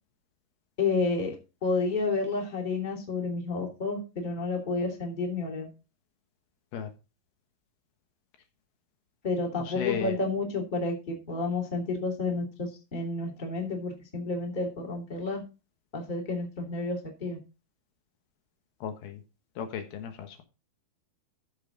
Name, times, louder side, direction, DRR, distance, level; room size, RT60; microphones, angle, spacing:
voice 1, 0.8-1.3 1.6-5.7 9.2-15.4 15.9-17.4, left 3 dB, 15° left, 1 dB, 2.2 m, -30 dB
voice 2, 9.6-10.2 18.8-19.2 19.6-20.4, left 8 dB, 75° left, 6 dB, 3.1 m, -35 dB
14.5 x 5.6 x 3.9 m, 0.30 s
omnidirectional pair, 4.5 m